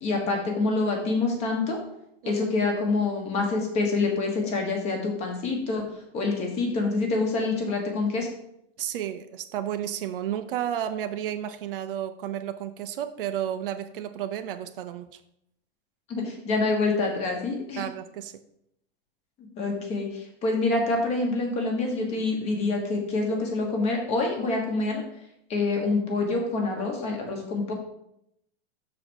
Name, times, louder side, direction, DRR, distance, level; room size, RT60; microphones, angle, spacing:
voice 1, 0.0-1.8 2.2-5.8 6.1-8.3 16.1-17.8 19.6-25.0 25.5-27.7, left 3 dB, 20° left, 2 dB, 1.2 m, -26 dB
voice 2, 8.8-15.2 17.8-18.4, right 10 dB, 60° right, 9 dB, 0.6 m, -32 dB
6.5 x 4.1 x 6.1 m, 0.78 s
supercardioid pair, 180°, 32 cm